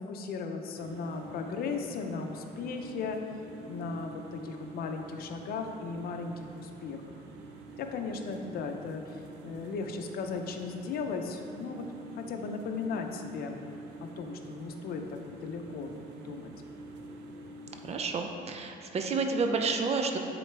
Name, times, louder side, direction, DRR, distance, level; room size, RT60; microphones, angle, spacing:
voice 1, 0.0-3.2 3.7-7.0 7.8-11.9 12.1-13.6 14.2-16.5, left 4 dB, 65° left, 5 dB, 0.6 m, -36 dB
sound 1, 0.8-18.0, right 3 dB, 85° right, 0.6 m, -47 dB
voice 2, 17.8-20.2, right 4 dB, 40° right, 4 dB, 0.5 m, -30 dB
7.7 x 3.9 x 3.3 m, 2.7 s
cardioid pair, 110°, 17 cm